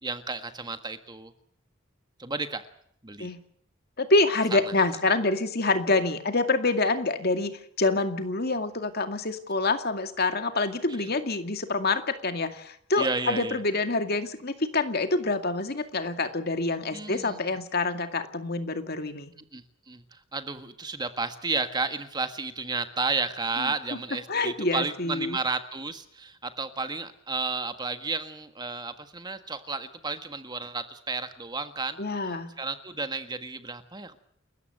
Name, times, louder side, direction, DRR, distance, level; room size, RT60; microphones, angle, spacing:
voice 1, 0.0-1.3 2.2-2.6 3.0-3.3 4.5-4.6 11.0-11.1 13.0-13.6 16.9-17.4 19.5-32.0 32.2-34.2, right 3 dB, 20° right, 9 dB, 1.6 m, -32 dB
voice 2, 4.0-19.3 23.6-23.7 24.3-25.4 32.0-32.5, left 3 dB, 50° left, 7 dB, 2.3 m, -26 dB
29.5 x 14.0 x 8.0 m, 0.66 s
head